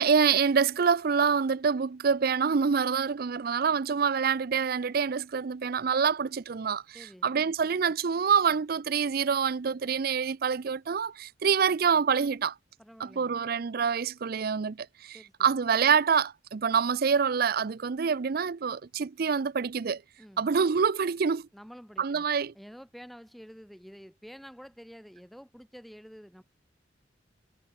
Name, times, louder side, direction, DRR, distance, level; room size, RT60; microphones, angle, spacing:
voice 1, 0.0-6.8 7.2-12.5 13.0-14.8 15.0-20.0 20.4-21.5 22.0-22.5, right 6 dB, 55° right, 0.5 m, -26 dB
voice 2, 6.9-7.3 12.8-13.4 15.1-15.5 20.2-20.4 21.5-22.3 22.5-26.4, equal, ahead, 4.5 m, -49 dB
head